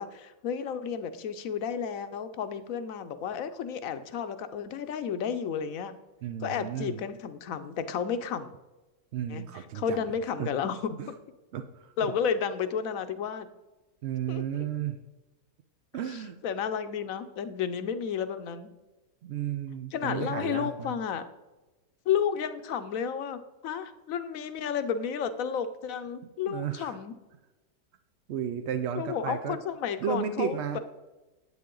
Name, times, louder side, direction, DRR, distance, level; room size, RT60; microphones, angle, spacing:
voice 1, 0.0-5.9 6.4-8.5 9.3-11.0 12.0-13.5 14.3-14.7 16.1-18.7 19.9-21.2 22.1-27.1 28.9-30.8, left 7 dB, 65° left, 10 dB, 1.1 m, -32 dB
voice 2, 6.2-7.0 9.1-10.0 10.4-10.5 11.0-11.1 11.5-11.9 14.0-15.0 15.9-16.4 19.2-21.0 26.5-27.0 28.3-29.6 30.0-30.8, right 9 dB, 65° right, 7 dB, 0.6 m, -33 dB
9.6 x 8.6 x 3.8 m, 1.1 s
omnidirectional pair, 1.7 m